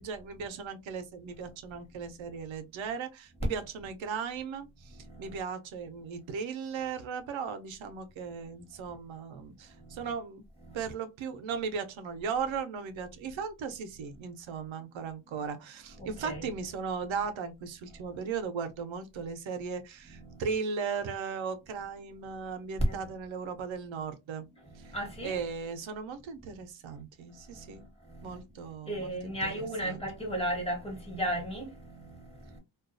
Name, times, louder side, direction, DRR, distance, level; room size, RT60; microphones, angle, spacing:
voice 1, 0.0-10.4 10.7-24.5 24.8-25.0 25.2-27.9 28.2-30.0, right 6 dB, 85° right, 0.6 m, -37 dB
voice 2, 3.4-3.9 4.9-5.4 8.9-9.0 9.7-10.1 10.6-10.9 15.3-15.5 15.9-16.6 17.9-18.0 20.0-20.6 22.8-23.1 24.5-25.4 26.9-27.0 27.5-28.4 28.8-32.6, equal, 15° left, 1.0 m, -36 dB
2.3 x 2.2 x 2.4 m
wide cardioid pair, 115°, 46 cm